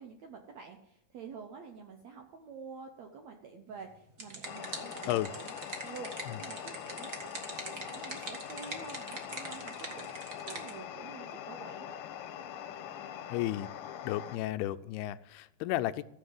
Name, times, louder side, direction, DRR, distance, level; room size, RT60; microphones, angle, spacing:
voice 1, 0.0-5.5 5.8-12.0, right 5 dB, 75° right, 4 dB, 1.6 m, -48 dB
sound 1, 3.9-10.7, right 2 dB, 45° right, 1.0 m, -43 dB
sound 2, 4.5-14.4, left 9 dB, 75° left, 2.3 m, -43 dB
voice 2, 13.3-13.7 14.0-16.0, left 14 dB, 90° left, 13 dB, 2.6 m, -33 dB
15.0 x 7.1 x 9.5 m, 0.81 s
omnidirectional pair, 4.5 m